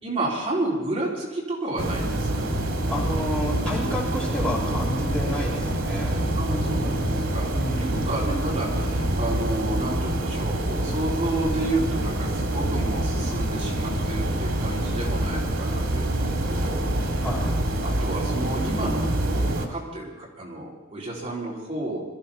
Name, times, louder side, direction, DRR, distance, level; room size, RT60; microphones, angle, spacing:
voice 1, 0.0-2.5 6.4-7.5 7.8-17.2 17.8-22.0, right 2 dB, 30° right, -5 dB, 4.0 m, -31 dB
sound 1, 1.8-19.7, right 1 dB, 80° right, 2.4 m, -26 dB
voice 2, 2.9-6.1 7.5-8.0 17.2-17.5, equal, 5° left, -6 dB, 3.2 m, -30 dB
21.5 x 14.5 x 4.3 m, 1.1 s
head